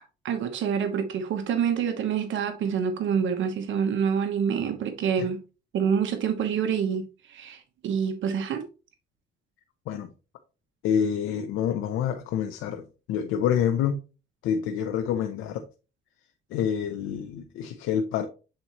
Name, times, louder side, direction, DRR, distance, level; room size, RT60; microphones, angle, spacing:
voice 1, 0.2-5.4 5.7-8.6, right 7 dB, 75° right, 1.0 m, -27 dB
voice 2, 10.8-14.0 14.4-15.7 16.5-18.3, left 8 dB, 90° left, 0.6 m, -27 dB
7.8 x 4.2 x 2.9 m
cardioid pair, 90°, 20 cm